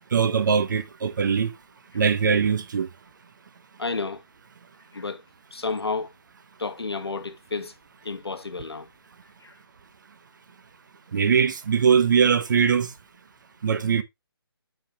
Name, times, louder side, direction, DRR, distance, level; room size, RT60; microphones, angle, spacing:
voice 1, 0.1-1.5 1.9-2.9 11.1-12.9 13.6-14.0, right 6 dB, 50° right, 1.0 m, -21 dB
voice 2, 3.8-4.2 4.9-5.2 5.5-6.1 6.6-7.7 8.0-8.9 9.4-9.6, left 4 dB, 90° left, 1.3 m, -31 dB
7.0 x 5.8 x 3.4 m
figure-of-eight pair, 155°, 13 cm